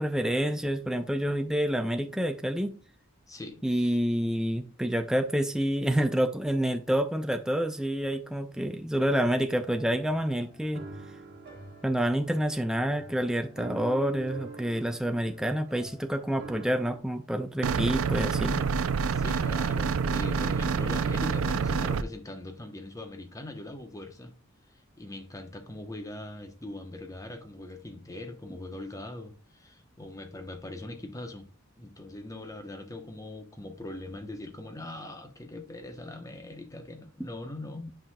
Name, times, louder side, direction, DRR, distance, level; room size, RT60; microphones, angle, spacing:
voice 1, 0.0-2.8 3.6-10.8 11.8-18.6 37.2-37.3, equal, 5° right, 0.4 m, -28 dB
voice 2, 3.3-4.0 19.1-24.3 24.7-31.5 31.8-37.9, left 1 dB, 15° left, 0.8 m, -41 dB
sound 1, 9.6-17.0, right 3 dB, 55° right, 1.3 m, -46 dB
sound 2, 17.6-22.0, right 5 dB, 85° right, 0.5 m, -27 dB
8.8 x 5.8 x 2.2 m
head